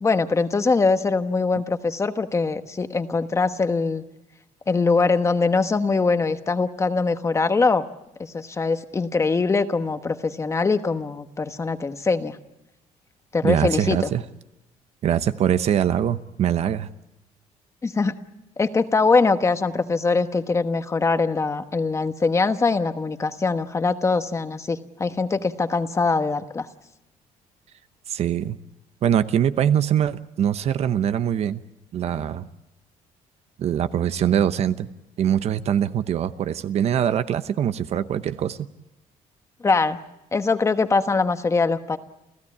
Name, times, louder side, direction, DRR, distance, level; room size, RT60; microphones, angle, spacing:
voice 1, 0.0-4.0 4.7-7.8 8.2-12.4 13.3-14.0 17.8-18.1 18.6-26.7 39.6-40.0 40.3-42.0, left 4 dB, 20° left, 9 dB, 1.2 m, -22 dB
voice 2, 13.4-14.2 15.0-16.9 28.1-28.6 29.0-31.6 31.9-32.5 33.6-34.9 35.2-38.6, right 9 dB, 50° right, 12 dB, 0.9 m, -23 dB
29.5 x 15.5 x 8.6 m, 0.93 s
cardioid pair, 130°, 13 cm